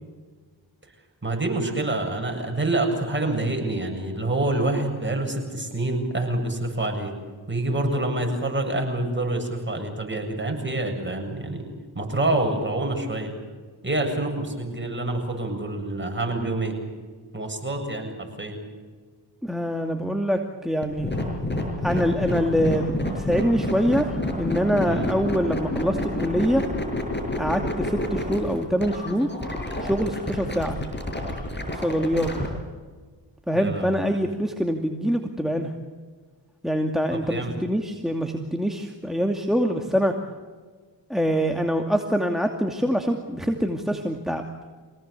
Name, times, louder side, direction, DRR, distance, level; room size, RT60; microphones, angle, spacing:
voice 1, 1.2-7.1 7.5-11.7 11.9-13.3 13.8-16.7 17.3-18.6 24.8-25.1 33.5-34.0 37.1-37.6, right 2 dB, 25° right, 3 dB, 7.7 m, -27 dB
voice 2, 19.4-21.1 21.8-26.6 27.4-29.3 29.8-30.8 31.7-32.3 33.5-35.7 36.6-40.2 41.1-44.4, equal, ahead, 4 dB, 2.6 m, -24 dB
sound 1, 20.8-32.5, left 1 dB, 20° left, 7.3 m, -28 dB
26.5 x 18.0 x 8.4 m, 1.5 s
supercardioid pair, 50°, 46 cm